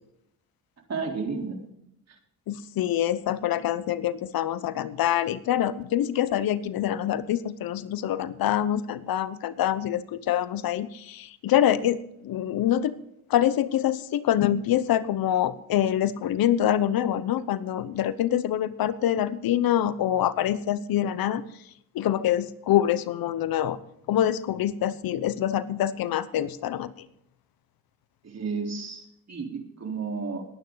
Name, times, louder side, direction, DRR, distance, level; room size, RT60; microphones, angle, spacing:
voice 1, 0.9-1.6 2.1-2.2 28.2-30.5, right 4 dB, 45° right, 2 dB, 3.9 m, -32 dB
voice 2, 2.5-12.9 13.3-21.4 21.9-23.8 24.1-27.1, left 11 dB, 75° left, 15 dB, 0.9 m, -25 dB
20.5 x 9.3 x 4.0 m, 0.79 s
cardioid pair, 70°, 36 cm